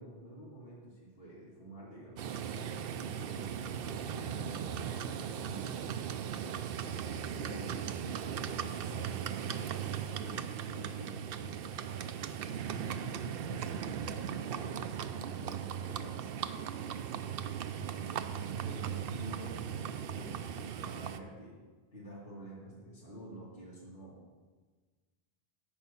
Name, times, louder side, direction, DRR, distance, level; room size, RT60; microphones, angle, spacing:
voice 1, 0.0-3.5 4.1-5.8 6.3-12.0 12.5-14.8 15.2-16.2 16.5-17.2 17.7-19.6 20.1-21.6 21.9-24.2, right 1 dB, 60° left, -6 dB, 2.9 m, -48 dB
Livestock farm animals working animals, 2.2-21.2, right 8 dB, 70° right, 0.7 m, -38 dB
10.0 x 5.0 x 7.1 m, 1.4 s
omnidirectional pair, 1.1 m